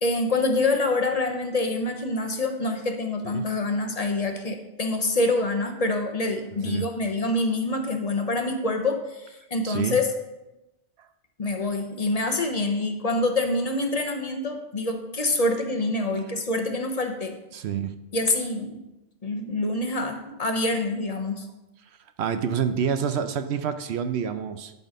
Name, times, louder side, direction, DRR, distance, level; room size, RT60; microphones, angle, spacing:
voice 1, 0.0-10.1 11.4-17.3 18.1-18.8 19.2-21.5, left 2 dB, 35° left, 4 dB, 0.9 m, -26 dB
voice 2, 9.6-10.0 17.5-17.9 22.2-24.7, right 7 dB, 70° right, 9 dB, 0.9 m, -27 dB
11.0 x 4.1 x 5.2 m, 0.97 s
omnidirectional pair, 1.2 m